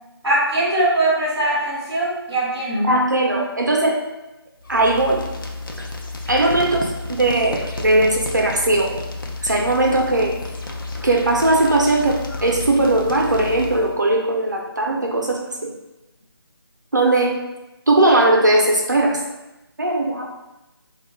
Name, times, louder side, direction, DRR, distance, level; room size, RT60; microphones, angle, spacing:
voice 1, 0.2-2.9, right 1 dB, ahead, -24 dB, 0.6 m, -21 dB
voice 2, 2.8-4.0 4.7-5.3 6.3-9.0 9.4-10.4 11.0-15.7 16.9-17.4 17.9-19.2 19.8-20.3, right 2 dB, 45° right, 0 dB, 0.4 m, -19 dB
sound 1, 4.6-14.0, left 2 dB, 55° left, 0.5 m, -32 dB
3.3 x 2.1 x 3.0 m, 0.99 s
figure-of-eight pair, 180°, 13 cm